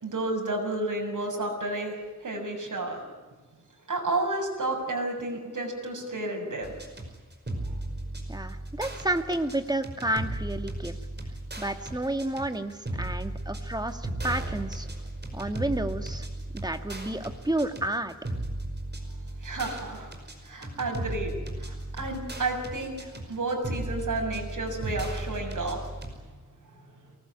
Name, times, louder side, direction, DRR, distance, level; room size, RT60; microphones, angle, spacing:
voice 1, 0.0-3.1 3.9-6.7 19.4-20.1 20.4-21.3 21.6-25.8, right 2 dB, 80° right, 2 dB, 6.9 m, -31 dB
sound 1, 6.6-26.1, right 1 dB, 35° right, 5.4 m, -36 dB
voice 2, 8.3-11.0 11.6-14.9 15.3-16.3 16.5-18.1, right 1 dB, 15° right, 7 dB, 1.9 m, -31 dB
23.5 x 19.5 x 9.6 m, 1.3 s
wide cardioid pair, 80°, 31 cm